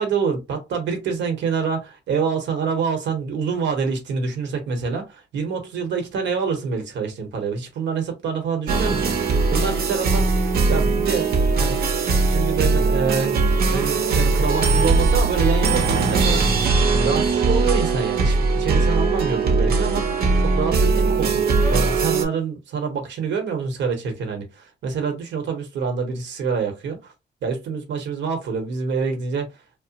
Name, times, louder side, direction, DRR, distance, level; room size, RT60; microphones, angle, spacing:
voice 1, 0.0-12.0 12.3-13.3 13.7-21.4 21.7-27.1 27.4-29.5, right 5 dB, 85° right, 1.0 m, -26 dB
sound 1, 8.7-22.2, right 3 dB, 55° right, 0.7 m, -20 dB
2.8 x 2.0 x 2.7 m
cardioid pair, 135°, 18 cm